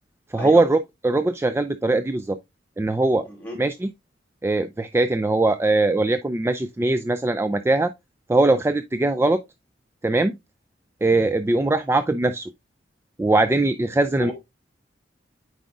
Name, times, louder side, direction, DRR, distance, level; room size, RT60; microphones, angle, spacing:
voice 1, 0.3-2.4 2.8-3.2 3.6-3.9 4.4-7.9 8.3-9.4 10.0-10.4 11.0-12.5 13.2-14.3, right 2 dB, 15° right, 0.3 m, -21 dB
voice 2, 3.2-3.6 14.2-14.3, left 1 dB, 10° left, 3.6 m, -32 dB
9.0 x 4.8 x 2.4 m
head